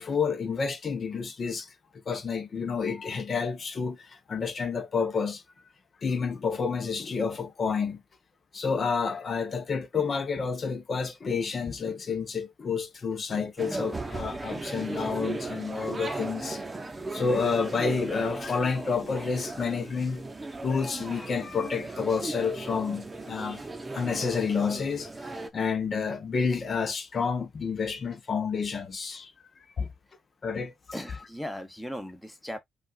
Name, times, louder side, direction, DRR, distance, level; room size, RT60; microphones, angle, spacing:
voice 1, 0.0-1.7 2.1-5.4 6.0-8.0 8.5-16.6 17.1-20.3 20.6-23.6 23.9-29.3 29.8-29.9 30.4-30.7, left 5 dB, 45° left, 0.9 m, -29 dB
sound 1, 13.6-25.5, right 2 dB, 20° right, 0.8 m, -37 dB
voice 2, 30.9-32.6, equal, 5° left, 1.0 m, -37 dB
5.4 x 2.5 x 2.4 m
cardioid pair, 90°, 0 cm